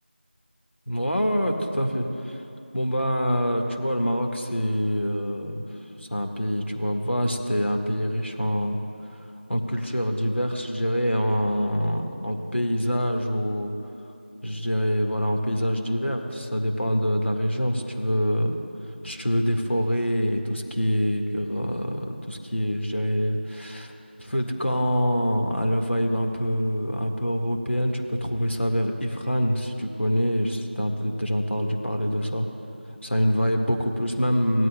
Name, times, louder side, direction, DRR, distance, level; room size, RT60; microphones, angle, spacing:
voice 1, 0.9-2.4 2.7-8.8 9.5-13.7 14.4-18.5 19.0-23.9 24.2-32.5 33.0-34.7, equal, 85° left, 3 dB, 1.6 m, -25 dB
18.0 x 12.5 x 2.2 m, 2.9 s
figure-of-eight pair, 175°, 6 cm